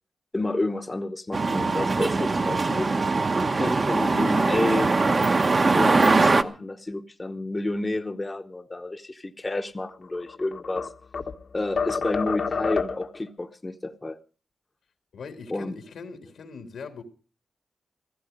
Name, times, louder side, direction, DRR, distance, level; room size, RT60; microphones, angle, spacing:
voice 1, 0.3-2.9 3.5-4.9 5.7-10.9 11.5-14.2 15.5-15.7, left 2 dB, 25° left, 1.0 m, -30 dB
sound 1, 1.3-6.4, right 3 dB, 40° right, 1.1 m, -22 dB
sound 2, 10.0-11.4 11.8-13.2, left 5 dB, 65° left, 1.4 m, -29 dB
voice 2, 15.1-17.0, left 5 dB, 85° left, 3.0 m, -41 dB
16.0 x 15.0 x 5.3 m
cardioid pair, 75°, 0 cm